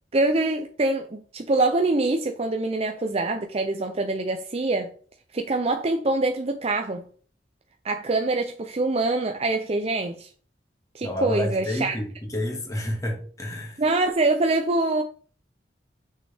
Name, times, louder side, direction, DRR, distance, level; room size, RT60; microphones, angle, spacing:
voice 1, 0.1-4.9 5.3-7.0 7.8-10.3 10.9-12.0 13.8-15.0, right 2 dB, 35° right, 0.6 m, -24 dB
voice 2, 11.0-12.0 12.3-13.8, left 1 dB, 20° left, 2.0 m, -29 dB
6.5 x 6.2 x 3.5 m
head